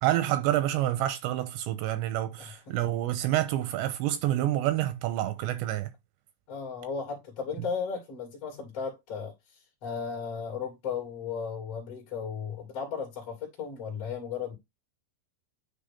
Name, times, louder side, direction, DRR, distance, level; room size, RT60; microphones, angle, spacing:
voice 1, 0.0-5.9, right 13 dB, 80° right, 2.7 m, -28 dB
voice 2, 2.4-2.7 6.5-14.5, left 6 dB, 40° left, 2.7 m, -35 dB
9.8 x 3.4 x 3.6 m
omnidirectional pair, 5.5 m